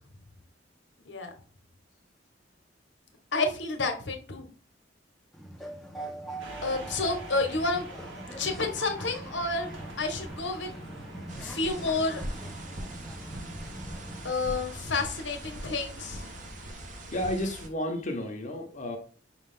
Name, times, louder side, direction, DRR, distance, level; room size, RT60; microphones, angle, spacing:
voice 1, 1.0-1.3 3.3-4.5 6.6-7.9 8.4-9.7 10.0-10.7 11.4-12.4 14.2-16.3, left 3 dB, 75° left, 0.9 m, -30 dB
sound 1, 5.3-14.3, right 1 dB, ahead, 0.5 m, -42 dB
sound 2, 6.4-17.7, right 1 dB, 85° right, 1.2 m, -45 dB
sound 3, 11.3-17.7, right 1 dB, 45° right, 0.7 m, -42 dB
voice 2, 17.1-19.0, left 1 dB, 40° left, 0.7 m, -32 dB
5.1 x 2.3 x 3.7 m
head